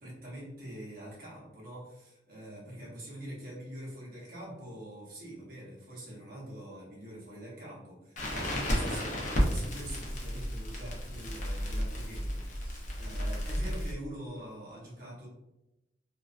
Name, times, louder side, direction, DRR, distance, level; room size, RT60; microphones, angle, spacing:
voice 1, 0.0-15.3, right 1 dB, 55° right, -5 dB, 0.9 m, -45 dB
Crackle, 8.2-13.9, equal, 45° left, 0.5 m, -32 dB
2.4 x 2.2 x 2.4 m, 0.91 s
head